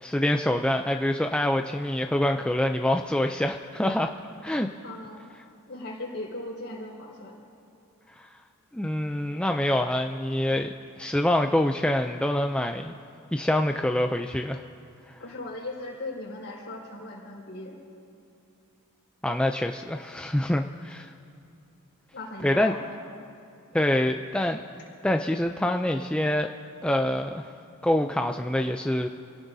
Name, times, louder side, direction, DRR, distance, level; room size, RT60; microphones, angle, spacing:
voice 1, 0.0-4.1 4.4-4.7 8.2-8.4 8.7-12.9 13.3-14.6 15.1-15.2 19.2-21.1 22.4-22.7 23.7-24.6 25.0-26.5 26.8-27.5 27.8-29.1, left 1 dB, 5° left, 4 dB, 0.4 m, -25 dB
voice 2, 4.8-5.3 5.7-7.4 15.2-17.7 22.1-22.9, left 2 dB, 50° left, -4 dB, 5.0 m, -38 dB
28.5 x 17.5 x 2.7 m, 2.7 s
head